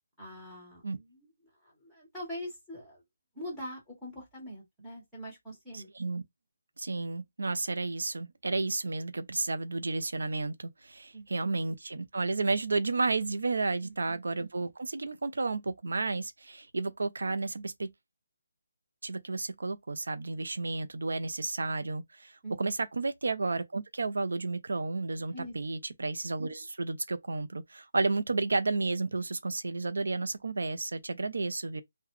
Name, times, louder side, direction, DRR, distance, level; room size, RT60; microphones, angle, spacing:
voice 1, 0.2-1.3 1.6-3.0 3.3-5.9 11.1-11.5 13.8-14.2 22.4-22.6 25.3-25.5, equal, ahead, 1.4 m, -43 dB
voice 2, 5.7-6.2 6.8-17.9 19.0-31.8, right 3 dB, 75° right, 0.5 m, -32 dB
3.8 x 2.1 x 3.1 m
hypercardioid pair, 175°, 0 cm